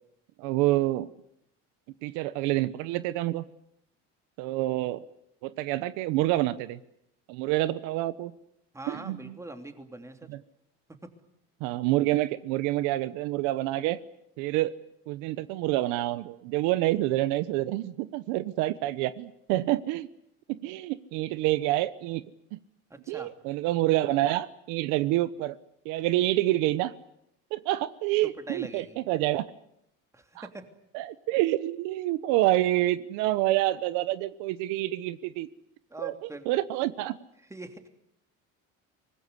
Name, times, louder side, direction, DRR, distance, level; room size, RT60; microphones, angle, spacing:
voice 1, 0.4-1.1 2.0-3.4 4.4-5.0 5.4-6.8 7.3-8.3 8.9-9.3 10.3-10.4 11.6-14.0 14.4-14.7 15.1-20.1 20.5-22.2 22.5-22.6 23.1-25.6 25.8-26.9 27.5-29.4 30.3-30.4 30.9-35.5 36.0-37.2, right 16 dB, 85° right, 15 dB, 1.1 m, -27 dB
voice 2, 8.7-10.3 22.9-23.3 28.2-29.0 30.1-30.7 35.9-36.5 37.5-37.9, right 2 dB, 10° right, 6 dB, 3.0 m, -42 dB
24.5 x 20.0 x 9.8 m, 0.77 s
cardioid pair, 120°, 30 cm